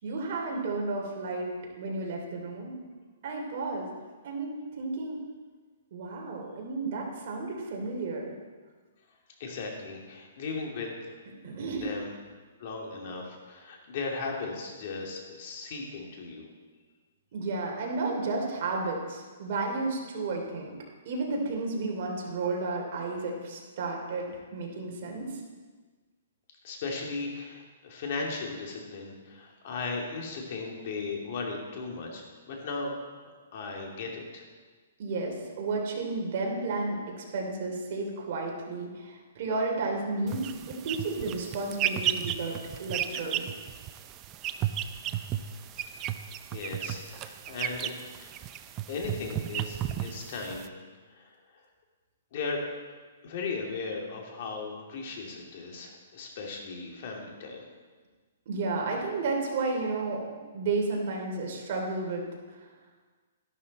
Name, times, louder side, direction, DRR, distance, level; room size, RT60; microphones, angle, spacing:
voice 1, 0.0-1.5 1.8-2.8 3.2-3.9 4.2-5.2 5.9-8.3 11.4-11.9 17.3-20.7 21.0-25.3 35.0-42.5 42.8-43.5 58.5-62.2 62.5-62.7, right 3 dB, 45° right, -1 dB, 3.0 m, -32 dB
voice 2, 9.4-11.1 11.8-12.1 12.6-16.4 26.6-32.9 33.2-34.4 46.5-47.9 48.2-48.5 48.9-50.7 51.1-51.3 52.3-52.6 53.2-57.6, left 4 dB, 45° left, 0 dB, 2.6 m, -37 dB
sound 1, 40.3-50.7, right 11 dB, 20° right, 0.5 m, -34 dB
12.5 x 11.5 x 4.2 m, 1.4 s
hypercardioid pair, 160°, 0 cm